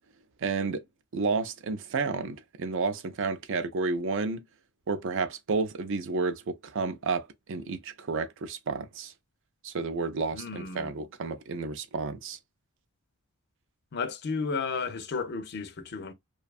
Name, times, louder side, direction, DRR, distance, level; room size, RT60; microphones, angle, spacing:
voice 1, 0.4-0.8 1.1-4.4 4.9-9.1 9.6-12.4, right 4 dB, 55° right, 0.4 m, -31 dB
voice 2, 10.3-10.9 13.9-16.1, left 4 dB, 50° left, 0.5 m, -33 dB
2.6 x 2.2 x 2.3 m
head